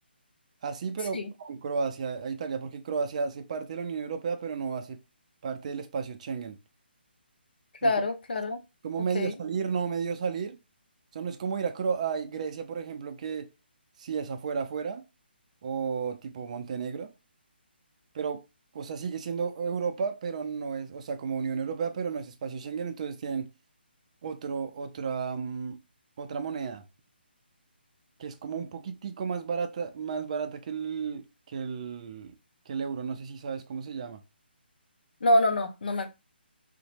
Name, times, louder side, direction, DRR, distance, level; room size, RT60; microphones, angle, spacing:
voice 1, 0.6-5.0 5.4-6.6 7.8-7.9 8.8-10.6 11.1-13.5 14.0-15.0 15.6-17.1 18.1-18.4 18.7-23.5 24.2-25.8 26.2-26.9 28.2-32.3 32.7-34.2, right 6 dB, 35° right, 0.4 m, -33 dB
voice 2, 7.8-8.6 9.1-9.3 35.2-36.1, left 1 dB, 60° left, 0.6 m, -25 dB
2.7 x 2.1 x 2.6 m
figure-of-eight pair, 140°, 6 cm